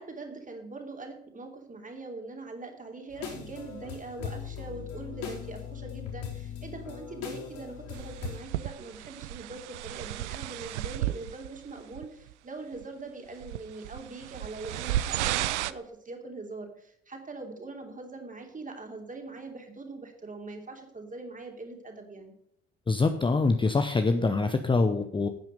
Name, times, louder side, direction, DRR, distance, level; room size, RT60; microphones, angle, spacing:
voice 1, 0.0-22.3, right 3 dB, 20° right, 3 dB, 3.0 m, -42 dB
sound 1, 3.1-8.4, left 8 dB, 50° left, 4.4 m, -39 dB
sound 2, 7.9-11.6 11.9-12.3 12.8-12.9 13.4-15.7, right 14 dB, 70° right, 0.6 m, -33 dB
voice 2, 22.9-25.3, left 3 dB, 15° left, 8 dB, 0.8 m, -24 dB
11.0 x 9.0 x 5.2 m, 0.69 s
figure-of-eight pair, 55°, 37 cm